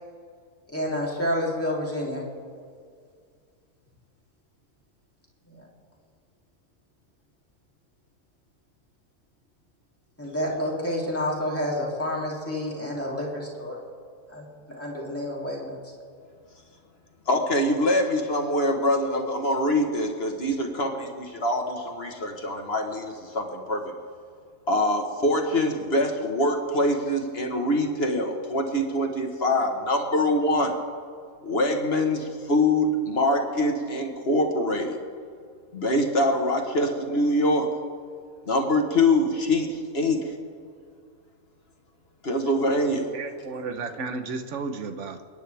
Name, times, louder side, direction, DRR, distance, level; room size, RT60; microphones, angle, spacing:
voice 1, 0.7-2.2 5.5-5.6 10.2-13.8 14.3-15.8, left 1 dB, 10° left, -4 dB, 2.9 m, -29 dB
voice 2, 17.3-23.8 24.7-30.7 31.4-35.0 35.7-37.7 38.5-40.2 42.2-43.1, left 1 dB, 50° left, 3 dB, 1.6 m, -24 dB
voice 3, 43.1-45.2, right 4 dB, 65° right, 7 dB, 1.3 m, -33 dB
29.5 x 10.0 x 3.5 m, 2.2 s
omnidirectional pair, 1.4 m